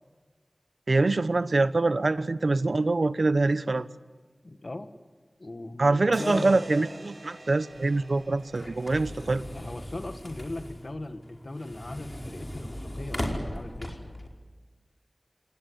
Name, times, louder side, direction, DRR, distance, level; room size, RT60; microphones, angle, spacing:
voice 1, 0.9-3.9 5.8-9.4, right 3 dB, 75° right, 13 dB, 0.9 m, -24 dB
voice 2, 4.4-4.9 5.4-6.6 9.5-14.0, left 2 dB, 55° left, 8 dB, 1.9 m, -38 dB
sound 1, 6.1-10.2, right 1 dB, 55° right, 8.0 m, -44 dB
sound 2, 7.7-14.3, left 1 dB, 40° left, 5.0 m, -38 dB
27.5 x 19.0 x 9.7 m, 1.3 s
wide cardioid pair, 55°, 0 cm